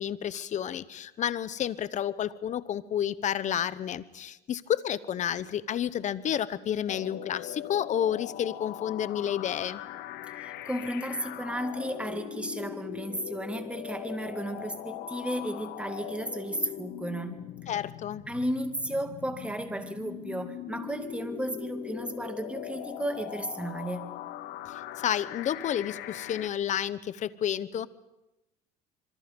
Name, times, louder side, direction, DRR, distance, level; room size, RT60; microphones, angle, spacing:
voice 1, 0.0-9.8 17.7-18.2 24.7-27.9, left 10 dB, 40° left, 17 dB, 1.0 m, -30 dB
sound 1, 6.9-26.5, left 13 dB, 70° left, 1.3 m, -41 dB
voice 2, 10.4-17.4 18.3-24.1, right 1 dB, 5° right, 7 dB, 2.2 m, -34 dB
26.0 x 23.5 x 5.3 m, 0.94 s
supercardioid pair, 105°, 18 cm